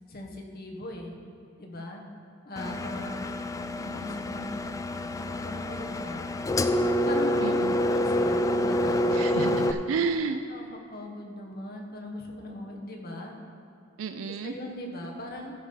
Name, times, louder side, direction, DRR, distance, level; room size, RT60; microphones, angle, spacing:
voice 1, 0.1-1.1 1.6-2.0 2.4-3.2 3.8-4.5 5.4-6.6 7.0-7.5 7.8-9.4 10.5-13.4 14.3-15.5, left 1 dB, 50° left, 1 dB, 1.2 m, -39 dB
Engine, 2.6-9.7, left 1 dB, 15° left, 0.3 m, -27 dB
voice 2, 7.4-7.7 9.1-10.4 14.0-14.5, right 5 dB, 85° right, 7 dB, 0.4 m, -31 dB
14.0 x 5.1 x 5.5 m, 2.4 s
head